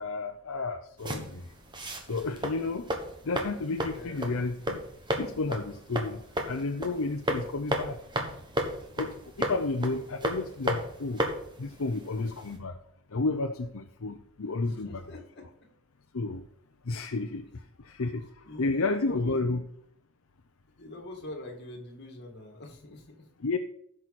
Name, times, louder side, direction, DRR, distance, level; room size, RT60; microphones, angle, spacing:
voice 1, 0.0-1.5 2.1-2.9 3.2-4.8 5.2-6.2 6.5-8.0 9.0-11.2 11.6-12.8 13.1-15.0 16.1-16.4 16.9-19.6 23.4-23.6, left 3 dB, 75° left, 5 dB, 0.7 m, -31 dB
sound 1, 1.0-12.6, equal, 20° right, 1.4 m, -35 dB
voice 2, 3.9-4.3 14.6-15.4 18.4-19.4 20.8-23.2, left 1 dB, 50° left, 1 dB, 2.3 m, -44 dB
15.5 x 6.2 x 4.2 m, 0.69 s
head